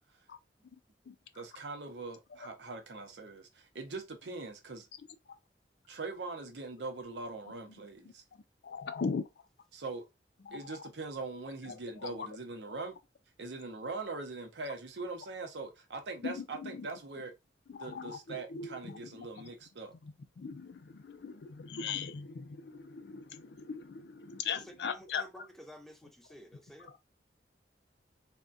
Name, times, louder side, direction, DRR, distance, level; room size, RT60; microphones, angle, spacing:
voice 1, 1.3-4.9 5.9-8.2 9.7-10.0 10.5-12.9 13.4-17.3 17.8-19.9, right 3 dB, 85° right, 0.7 m, -42 dB
voice 2, 8.6-9.2 10.4-10.8 11.6-11.7 12.0-12.3 16.2-16.9 17.7-19.3 20.4-25.2, left 5 dB, 70° left, 0.4 m, -39 dB
voice 3, 24.5-27.0, equal, ahead, 0.5 m, -52 dB
3.4 x 2.2 x 2.5 m
head